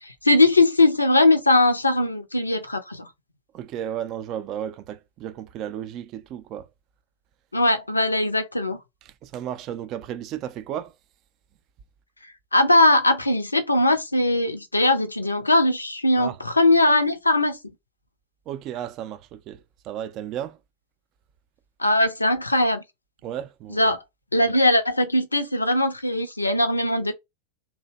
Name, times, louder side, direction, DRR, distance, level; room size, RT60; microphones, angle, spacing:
voice 1, 0.0-3.1 7.5-8.8 12.5-17.6 21.8-22.8 23.7-24.0 24.3-27.1, left 2 dB, 80° left, 0.5 m, -20 dB
voice 2, 3.5-6.7 9.0-10.9 16.2-16.4 18.5-20.6 23.2-23.9, right 10 dB, 35° right, 0.4 m, -34 dB
2.6 x 2.1 x 2.7 m
figure-of-eight pair, 90°, 0 cm